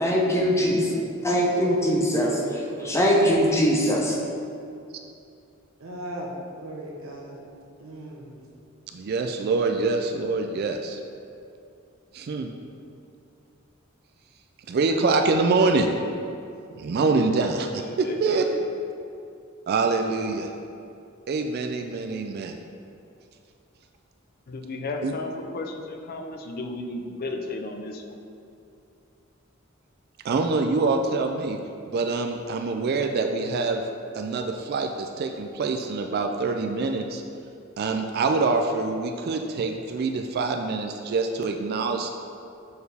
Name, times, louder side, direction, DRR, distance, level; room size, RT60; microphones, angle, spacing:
voice 1, 0.0-0.9 1.2-2.3 2.8-4.2, equal, 15° left, -2 dB, 0.8 m, -21 dB
voice 2, 0.6-1.4 17.8-18.7 24.5-28.2, left 2 dB, 45° left, 4 dB, 0.5 m, -35 dB
voice 3, 1.6-3.1 5.8-6.3 6.6-7.4 7.8-8.4, right 2 dB, 85° right, -1 dB, 0.9 m, -36 dB
voice 4, 8.9-11.0 12.1-12.5 14.7-15.9 16.8-18.5 19.7-20.5 21.3-22.5 25.0-25.1 30.2-31.6 31.9-33.8 34.1-37.2 37.8-42.2, right 3 dB, 50° right, 4 dB, 0.3 m, -25 dB
6.6 x 4.5 x 3.4 m, 2.5 s
head